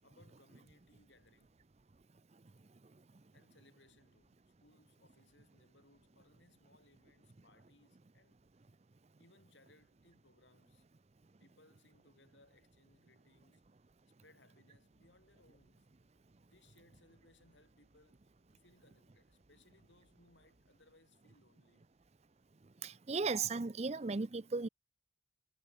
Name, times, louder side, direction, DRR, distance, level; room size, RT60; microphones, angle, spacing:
voice 1, 0.0-1.7 3.3-8.5 9.2-10.9 11.4-13.7 14.2-15.9 16.5-18.2 18.5-21.9, left 2 dB, 75° left, 6.8 m, -68 dB
sound 1, 14.9-21.4, equal, 70° right, 6.5 m, -77 dB
voice 2, 22.8-24.7, right 4 dB, 35° right, 0.5 m, -36 dB
head